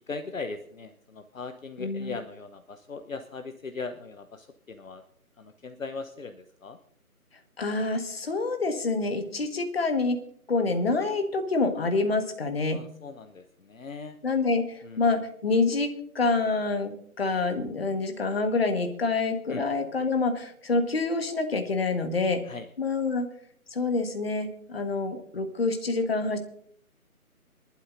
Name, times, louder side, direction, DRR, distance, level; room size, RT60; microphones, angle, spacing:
voice 1, 0.1-5.0 5.4-6.8 12.7-14.2 14.8-15.0 19.5-19.6 20.0-20.1 22.4-22.7, left 4 dB, 60° left, 8 dB, 1.0 m, -39 dB
voice 2, 1.8-2.2 7.6-10.2 10.5-12.8 14.2-22.4 22.8-23.3 23.7-26.4, left 3 dB, 40° left, 6 dB, 1.6 m, -27 dB
24.5 x 11.5 x 2.6 m, 0.64 s
figure-of-eight pair, 155°, 44 cm